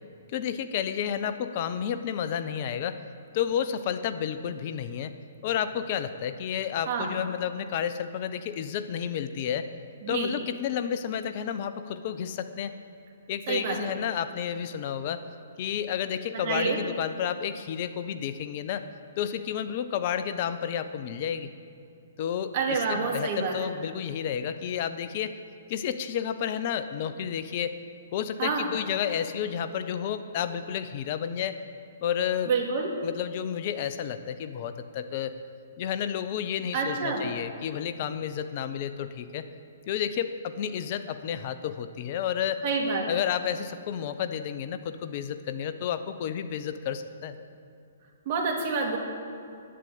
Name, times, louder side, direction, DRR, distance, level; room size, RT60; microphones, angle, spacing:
voice 1, 0.3-3.0 3.3-5.1 5.4-9.7 10.1-12.7 13.3-15.2 15.6-18.9 19.2-21.5 22.2-25.3 25.7-27.7 28.1-31.6 32.0-32.5 33.0-35.4 35.8-39.5 39.9-42.6 43.1-47.4, left 9 dB, 45° left, 11 dB, 0.7 m, -31 dB
voice 2, 13.5-13.8 16.3-16.8 22.5-23.7 28.4-28.7 32.5-32.9 36.7-37.3 42.6-43.2 48.3-49.0, right 4 dB, 45° right, 1 dB, 2.4 m, -28 dB
11.0 x 9.1 x 8.5 m, 2.5 s
figure-of-eight pair, 125°, 0 cm